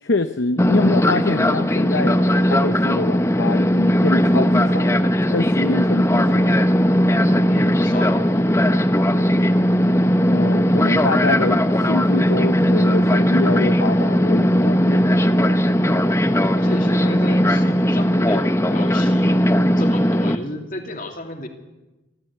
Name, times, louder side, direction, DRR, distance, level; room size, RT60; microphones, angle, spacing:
voice 1, 0.0-2.2 2.5-4.9 5.3-6.6 10.3-15.1, left 3 dB, 60° left, 8 dB, 0.8 m, -25 dB
Fixed-wing aircraft airplane, 0.6-20.4, equal, 15° left, 0.7 m, -18 dB
voice 2, 7.5-8.7 16.6-19.5 19.8-21.5, left 1 dB, 45° left, 3 dB, 2.8 m, -32 dB
27.0 x 13.5 x 8.5 m, 1.1 s
head